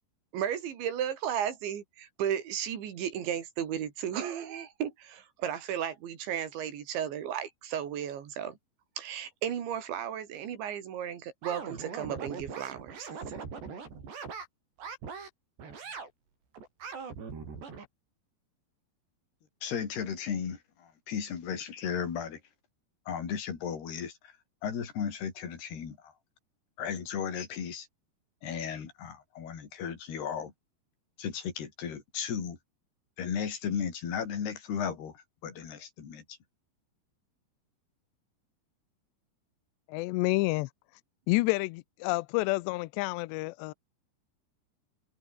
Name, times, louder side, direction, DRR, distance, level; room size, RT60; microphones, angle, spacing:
voice 1, 0.3-8.6 9.0-13.4, right 9 dB, 90° right, 5.3 m, -34 dB
sound 1, 11.4-14.5 14.8-15.3 15.6-16.1 16.5-17.9, right 5 dB, 70° right, 8.2 m, -41 dB
voice 2, 19.6-22.4 23.1-24.3 24.6-26.1 26.8-27.9 28.4-30.5 31.2-32.6 33.2-36.4, left 7 dB, 65° left, 5.9 m, -35 dB
voice 3, 39.9-40.7 41.3-43.7, left 22 dB, 80° left, 2.8 m, -29 dB
omnidirectional pair, 5.1 m